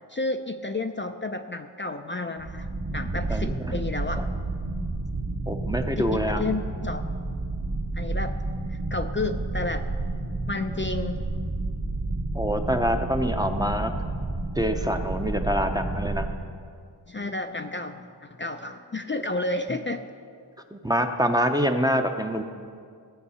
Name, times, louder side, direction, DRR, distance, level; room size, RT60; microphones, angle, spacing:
voice 1, 0.1-4.3 6.0-7.1 8.0-8.4 8.7-9.8 10.5-11.3 17.1-20.0, left 2 dB, 30° left, 6 dB, 0.5 m, -31 dB
sound 1, 2.4-16.3, right 2 dB, 65° right, 2.0 m, -30 dB
voice 2, 3.3-3.8 4.2-4.3 5.5-6.4 12.3-13.9 14.6-16.3 20.7-22.4, equal, 10° right, 5 dB, 0.7 m, -26 dB
15.0 x 7.5 x 5.6 m, 2.2 s
wide cardioid pair, 85°, 43 cm